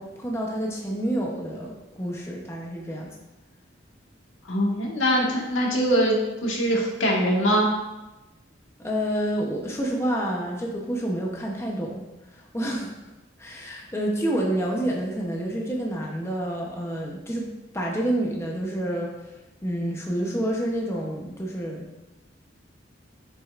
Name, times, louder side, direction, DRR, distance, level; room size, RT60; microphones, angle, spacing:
voice 1, 0.0-3.1 8.8-12.0 12.3-12.9 13.4-19.1 19.6-21.9, right 1 dB, 15° left, -1 dB, 0.8 m, -28 dB
voice 2, 4.4-7.7, equal, 85° left, -2 dB, 1.6 m, -22 dB
7.5 x 6.3 x 2.5 m, 1.0 s
head